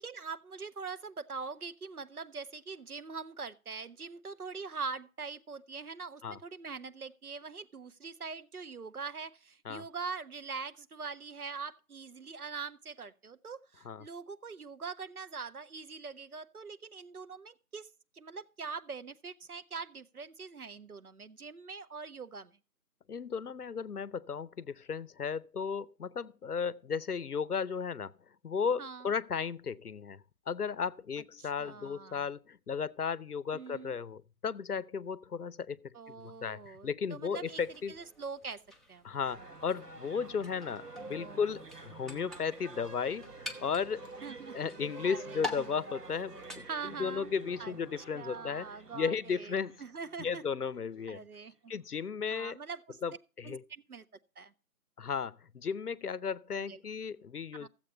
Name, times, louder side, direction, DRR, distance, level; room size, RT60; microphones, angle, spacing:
voice 1, 0.0-17.9 18.1-22.5 28.8-29.1 31.4-32.2 33.5-34.0 35.9-38.6 38.9-39.1 41.0-41.4 44.2-44.6 45.0-45.7 46.7-47.3 47.6-47.8 48.1-49.5 49.8-50.4 51.1-51.7 52.3-53.0 53.4-54.0 54.4-54.5 56.5-56.8 57.5-57.7, right 5 dB, 70° right, 0.8 m, -43 dB
voice 2, 23.1-28.1 28.4-38.0 39.0-44.1 44.5-48.7 48.9-49.8 50.2-51.2 51.7-52.6 53.0-53.6 55.0-57.7, left 6 dB, 75° left, 0.7 m, -35 dB
sound 1, 37.4-46.6, left 2 dB, ahead, 0.6 m, -47 dB
sound 2, 39.2-50.7 51.0-51.1, right 3 dB, 85° right, 1.3 m, -49 dB
14.0 x 7.5 x 4.3 m
figure-of-eight pair, 175°, 46 cm